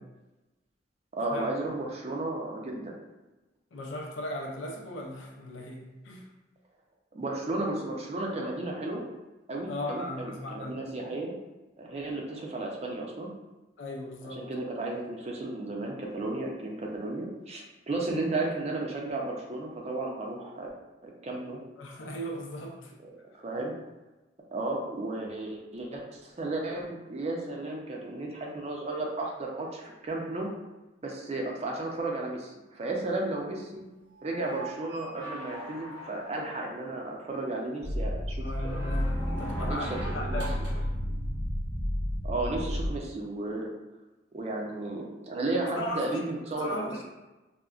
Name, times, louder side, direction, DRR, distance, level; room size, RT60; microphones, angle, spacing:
voice 1, 1.1-3.0 7.1-9.0 9.5-11.4 11.8-13.3 14.4-20.7 21.0-21.6 23.3-23.7 24.5-30.5 31.0-33.8 34.2-38.8 39.5-40.4 42.2-43.7 44.3-46.9, right 2 dB, 35° right, 0 dB, 0.4 m, -34 dB
voice 2, 3.7-6.3 9.7-10.8 13.8-14.5 21.8-22.9 23.5-23.6 38.4-40.9 45.8-46.2 46.6-47.0, left 1 dB, 85° left, 0 dB, 0.5 m, -37 dB
sound 1, 34.1-36.6 38.4-40.9 42.6-42.7, right 1 dB, 70° right, 0.7 m, -43 dB
sound 2, 37.8-42.9, equal, 20° left, 0.7 m, -31 dB
3.6 x 2.1 x 2.3 m, 1.1 s
head